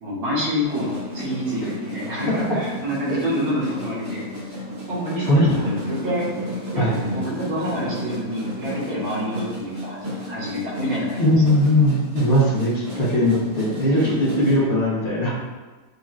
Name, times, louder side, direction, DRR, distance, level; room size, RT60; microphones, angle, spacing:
voice 1, 0.0-4.3 4.9-5.7 6.0-6.3 6.5-6.8 7.1-11.2 14.0-14.2, equal, 70° right, -8 dB, 1.9 m, -27 dB
sound 1, 0.6-14.6, equal, 90° right, 2.2 m, -33 dB
voice 2, 5.3-5.7 6.8-7.1 11.2-15.3, left 1 dB, 40° left, -7 dB, 1.1 m, -19 dB
6.6 x 2.9 x 2.4 m, 1.3 s
omnidirectional pair, 1.7 m